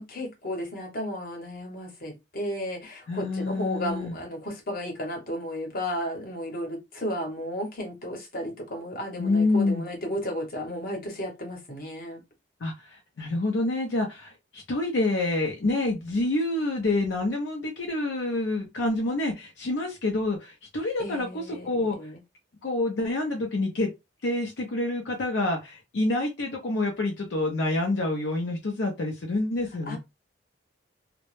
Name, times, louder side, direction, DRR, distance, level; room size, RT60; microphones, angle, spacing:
voice 1, 0.0-12.2 21.0-22.2 29.9-30.0, equal, 50° left, 0.9 m, -34 dB
voice 2, 3.1-4.1 9.2-9.8 12.6-22.1 22.6-23.9 24.2-30.0, left 2 dB, 75° left, 0.5 m, -27 dB
2.1 x 2.0 x 3.0 m
head